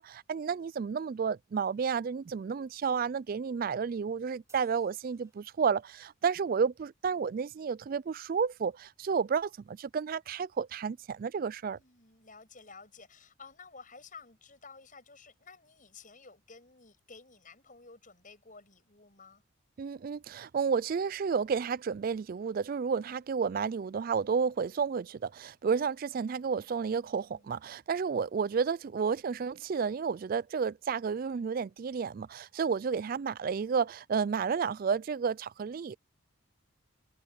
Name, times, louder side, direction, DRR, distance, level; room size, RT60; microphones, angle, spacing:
voice 1, 0.0-11.8 19.8-36.0, right 6 dB, 45° right, 0.3 m, -31 dB
sound 1, 4.5-6.1, right 4 dB, 15° right, 4.7 m, -66 dB
voice 2, 11.7-19.4 26.9-27.5, left 4 dB, 40° left, 8.0 m, -53 dB
head